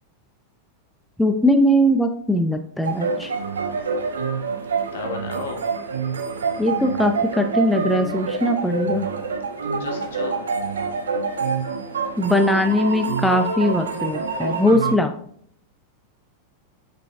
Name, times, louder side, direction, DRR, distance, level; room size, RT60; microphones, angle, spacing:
voice 1, 1.2-3.3 6.6-9.1 12.2-15.1, left 1 dB, 5° left, 6 dB, 0.5 m, -20 dB
sound 1, 2.8-14.9, right 5 dB, 70° right, 0.8 m, -26 dB
voice 2, 4.9-5.6 9.6-10.5, left 4 dB, 60° left, 3 dB, 1.4 m, -33 dB
5.8 x 5.8 x 3.5 m, 0.63 s
figure-of-eight pair, 90°, 0 cm